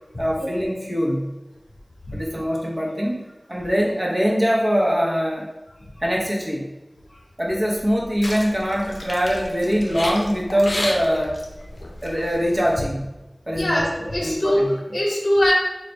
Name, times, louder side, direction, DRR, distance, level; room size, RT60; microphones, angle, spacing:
voice 1, 0.2-1.3 2.1-5.5 6.0-6.7 7.4-11.4 12.0-13.0 13.5-14.7, equal, 35° right, -3 dB, 0.9 m, -23 dB
sound 1, 7.7-12.8, left 1 dB, 90° left, 0.5 m, -33 dB
voice 2, 13.6-14.6 14.9-15.5, left 1 dB, 70° left, -3 dB, 1.0 m, -21 dB
4.0 x 2.4 x 3.3 m, 1.1 s
wide cardioid pair, 40°, 0 cm